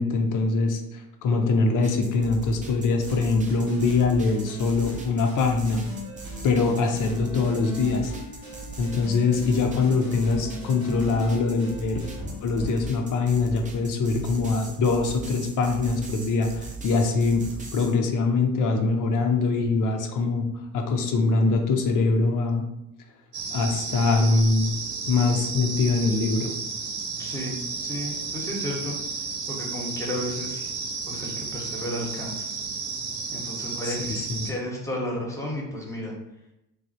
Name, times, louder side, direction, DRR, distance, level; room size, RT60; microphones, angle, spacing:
voice 1, 0.0-5.8 6.4-8.1 8.8-12.0 12.4-17.4 17.7-20.5 20.7-22.6 23.5-24.8 25.1-26.5 33.8-34.5, left 3 dB, 45° left, 4 dB, 0.6 m, -23 dB
sound 1, 1.8-18.0, right 3 dB, 20° right, 0.5 m, -40 dB
sound 2, 3.1-13.0, left 2 dB, 85° right, 1.0 m, -39 dB
sound 3, 23.3-34.5, right 4 dB, 55° right, 0.7 m, -33 dB
voice 2, 27.2-28.9 29.5-30.7 31.1-32.5 33.3-36.1, left 1 dB, 5° left, -2 dB, 1.0 m, -33 dB
3.1 x 2.2 x 2.6 m, 0.88 s
hypercardioid pair, 50°, 45 cm